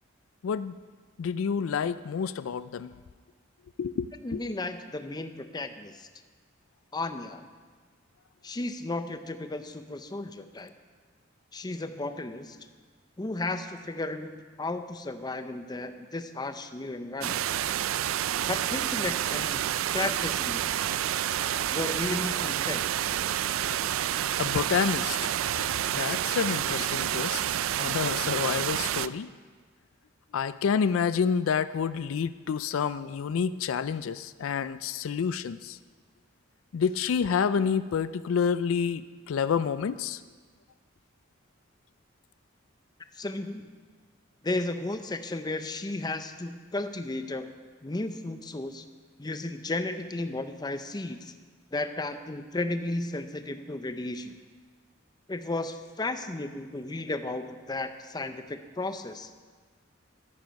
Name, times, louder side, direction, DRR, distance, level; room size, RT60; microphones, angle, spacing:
voice 1, 0.4-0.8 1.2-2.9 3.8-4.1 4.3-4.4 24.4-27.4 27.8-29.3 30.3-35.8 36.7-40.2, left 6 dB, 80° left, 14 dB, 0.4 m, -28 dB
voice 2, 4.2-6.1 6.9-7.4 8.4-10.7 11.5-12.6 13.2-17.4 18.5-19.6 19.9-20.6 21.7-22.9 43.1-43.7 44.4-47.5 47.8-48.9 49.2-51.3 51.7-54.4 55.3-59.3, left 2 dB, 20° left, 9 dB, 0.6 m, -34 dB
sound 1, 17.2-29.1, right 11 dB, 90° right, 0.4 m, -29 dB
14.0 x 9.9 x 5.3 m, 1.5 s
head